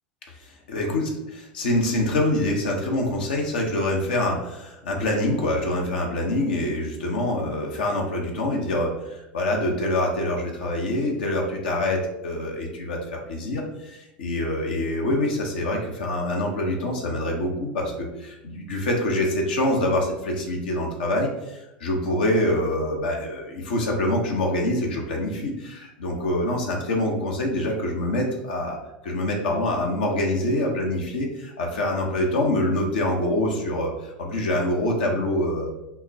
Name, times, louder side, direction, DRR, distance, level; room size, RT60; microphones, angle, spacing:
voice 1, 0.4-1.1 1.4-28.8 29.0-35.7, left 1 dB, 75° left, 1 dB, 0.8 m, -25 dB
5.5 x 2.1 x 2.7 m, 0.91 s
hypercardioid pair, 90°, 5 cm